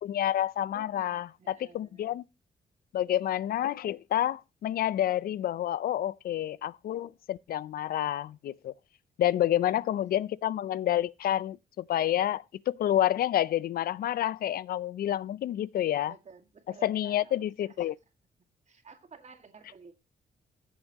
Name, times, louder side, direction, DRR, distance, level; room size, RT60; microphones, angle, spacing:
voice 1, 0.0-2.2 2.9-8.7 9.2-16.1 16.8-17.9, left 12 dB, 70° left, 0.4 m, -29 dB
voice 2, 0.7-2.2 9.2-9.7 16.1-17.9 18.7-19.9, right 5 dB, 45° right, 2.0 m, -54 dB
14.5 x 7.4 x 2.9 m
cardioid pair, 85°, 16 cm